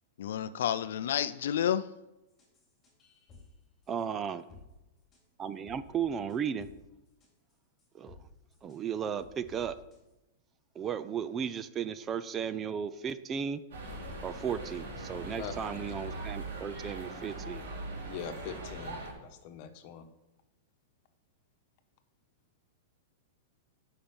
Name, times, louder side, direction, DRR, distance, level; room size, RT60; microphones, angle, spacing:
voice 1, 0.2-1.9, left 9 dB, 75° left, 13 dB, 0.4 m, -30 dB
sound 1, 2.3-3.5 3.8-4.0 4.5-4.7 5.1-5.2 5.7-6.8 7.1-8.2 8.5-8.8 9.2-10.1, left 4 dB, 20° left, 3.5 m, -55 dB
voice 2, 3.9-4.4 5.4-6.7 7.9-8.2 8.6-9.8 10.7-13.6 14.2-17.6, right 7 dB, 20° right, 14 dB, 0.5 m, -35 dB
sound 2, 13.7-19.1, right 2 dB, 75° right, 3.6 m, -41 dB
voice 3, 18.1-20.1, left 7 dB, 45° left, 7 dB, 1.3 m, -42 dB
9.4 x 5.8 x 7.2 m, 0.99 s
hypercardioid pair, 145°, 0 cm